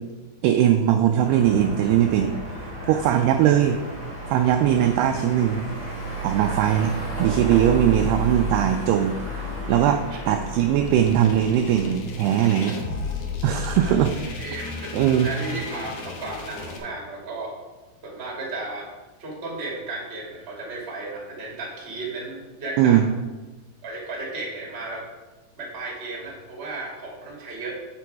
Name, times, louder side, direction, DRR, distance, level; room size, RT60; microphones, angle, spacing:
voice 1, 0.4-3.8 4.3-5.7 6.2-6.9 7.2-9.1 9.7-12.8 13.4-14.1 14.9-15.3 22.8-23.0, right 10 dB, 90° right, 6 dB, 2.3 m, -20 dB
sound 1, 1.2-11.9, right 1 dB, 30° left, 1.7 m, -32 dB
voice 2, 2.8-3.2 6.4-6.7 10.1-10.3 12.7-12.8 13.7-17.5 18.0-18.9 19.2-23.1 23.8-25.1 25.6-27.7, right 2 dB, 25° right, -3 dB, 1.3 m, -35 dB
sound 2, 10.8-16.8, left 4 dB, 85° left, 1.7 m, -34 dB
8.3 x 6.1 x 4.6 m, 1.2 s
omnidirectional pair, 5.2 m